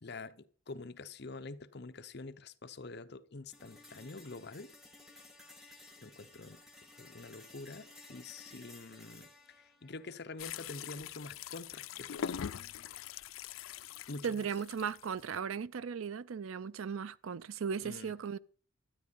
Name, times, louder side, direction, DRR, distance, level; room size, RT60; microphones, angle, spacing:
voice 1, 0.0-4.7 6.0-6.6 6.9-12.4 14.1-14.4 17.8-18.1, left 3 dB, 50° left, 0.8 m, -47 dB
sound 1, 3.5-11.5, left 2 dB, ahead, 1.6 m, -57 dB
sound 2, 10.4-15.4, left 8 dB, 80° left, 0.4 m, -43 dB
voice 2, 14.2-18.4, right 6 dB, 80° right, 0.5 m, -37 dB
12.5 x 9.5 x 5.4 m
head